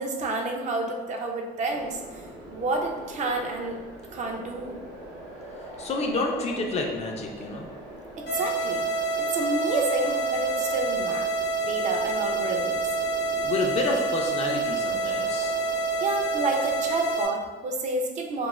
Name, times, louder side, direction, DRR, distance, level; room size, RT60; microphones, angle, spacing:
voice 1, 0.0-2.2 2.5-3.8 4.1-4.8 8.2-8.8 9.3-11.3 11.6-12.8 16.0-18.5, right 2 dB, 45° right, 2 dB, 0.4 m, -29 dB
sound 1, 1.7-17.1, right 1 dB, 90° right, 0.7 m, -43 dB
voice 2, 5.8-7.7 13.4-15.5, left 3 dB, 40° left, 1 dB, 0.4 m, -29 dB
sound 2, 8.3-17.3, right 3 dB, 80° left, 0.8 m, -27 dB
2.4 x 2.1 x 3.0 m, 1.3 s
cardioid pair, 110°, 17 cm